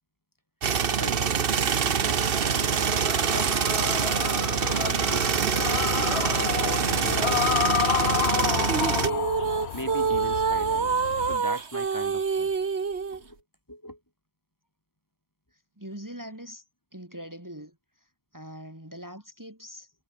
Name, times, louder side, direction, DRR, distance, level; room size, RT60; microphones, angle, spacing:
sound 1, 0.6-9.1, right 7 dB, 60° right, 1.2 m, -25 dB
voice 1, 0.9-4.2 4.8-5.9 6.4-7.8 8.3-9.3 9.7-12.5 13.1-13.4 13.7-14.0, equal, 15° left, 5.0 m, -40 dB
sound 2, 1.9-11.4, left 10 dB, 80° left, 1.0 m, -30 dB
sound 3, 8.7-13.2, right 5 dB, 85° right, 1.9 m, -27 dB
voice 2, 15.5-16.6 16.9-19.9, equal, 15° right, 3.7 m, -43 dB
omnidirectional pair, 1.1 m